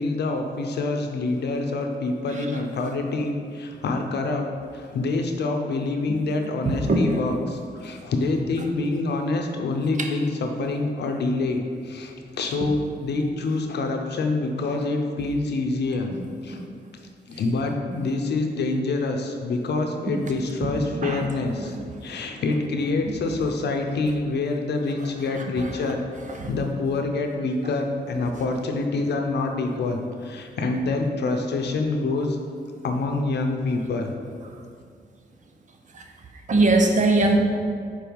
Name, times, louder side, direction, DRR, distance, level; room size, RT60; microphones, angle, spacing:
voice 1, 0.0-4.5 4.7-16.1 16.4-16.6 17.3-21.7 22.0-26.0 26.5-32.4 32.8-34.1, left 3 dB, 75° left, 4 dB, 0.7 m, -26 dB
voice 2, 6.6-7.2 10.0-10.1 16.1-16.7 17.9-18.0 20.1-20.2 20.6-21.3 21.6-21.8 25.0-25.9 26.3-26.5 35.9-36.1 36.5-37.4, right 2 dB, 45° right, 3 dB, 0.8 m, -24 dB
4.6 x 4.5 x 5.3 m, 2.2 s
cardioid pair, 90°, 17 cm